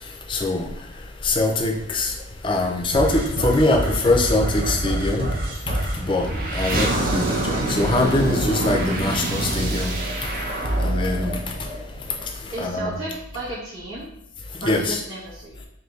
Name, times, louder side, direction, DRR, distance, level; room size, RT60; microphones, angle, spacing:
voice 1, 0.3-0.7 1.2-2.1 2.4-5.3 6.0-10.0 10.8-11.3 12.6-13.0 14.6-15.0, left 2 dB, 25° left, 3 dB, 0.4 m, -22 dB
sound 1, 2.9-12.3, right 1 dB, 45° right, 0.6 m, -25 dB
voice 2, 12.5-14.1 14.6-15.6, right 2 dB, 85° right, -8 dB, 1.2 m, -33 dB
3.3 x 2.6 x 4.0 m, 0.78 s
head